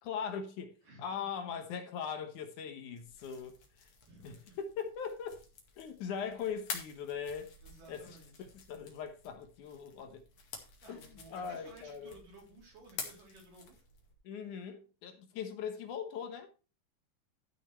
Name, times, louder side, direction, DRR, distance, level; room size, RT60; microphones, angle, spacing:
voice 1, 0.0-3.9 4.2-5.4 5.8-7.5 7.9-8.2 8.7-10.2 10.9-12.2 14.2-16.5, left 7 dB, 70° left, 2.6 m, -40 dB
sound 1, 3.0-14.1, left 5 dB, 55° left, 3.0 m, -49 dB
voice 2, 4.1-4.6 7.6-8.5 10.8-13.8, right 2 dB, 75° right, 5.4 m, -56 dB
12.5 x 6.4 x 4.4 m
omnidirectional pair, 3.8 m